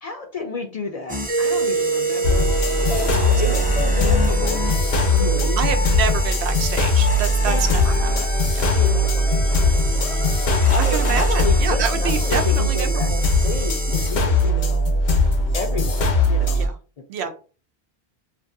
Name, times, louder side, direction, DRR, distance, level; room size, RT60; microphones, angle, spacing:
voice 1, 0.0-2.5 2.9-4.8 5.1-5.6 7.4-7.6 8.7-10.2 10.7-13.1 13.4-15.0 15.5-16.7 17.2-17.3, left 3 dB, 50° left, 3 dB, 0.5 m, -31 dB
sound 1, 1.1-14.5, equal, 10° right, 0.5 m, -31 dB
Mallet percussion, 1.3-5.9, right 4 dB, 45° right, 0.7 m, -27 dB
sound 2, 2.2-16.7, left 1 dB, 90° left, 1.0 m, -20 dB
voice 2, 5.6-8.1 8.5-8.7 10.9-13.2 16.5-16.7 17.1-17.3, right 7 dB, 85° right, 6 dB, 0.8 m, -27 dB
2.6 x 2.5 x 2.6 m, 0.36 s
omnidirectional pair, 1.1 m